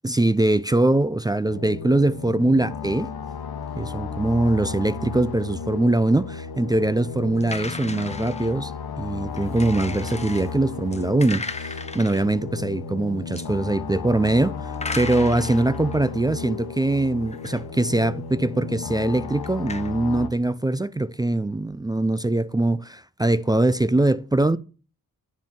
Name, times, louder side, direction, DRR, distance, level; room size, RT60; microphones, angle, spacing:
voice 1, 0.0-3.1 3.8-8.7 9.0-24.6, right 2 dB, 10° right, 0.3 m, -22 dB
sound 1, 1.5-20.3, left 5 dB, 75° left, 1.1 m, -34 dB
sound 2, 7.4-8.6 9.4-10.5 10.9-12.3 13.2-13.5 14.7-16.1 17.3-17.6 18.1-18.2 19.0-19.9, left 3 dB, 15° left, 0.9 m, -36 dB
9.8 x 3.7 x 7.3 m
cardioid pair, 60°, 38 cm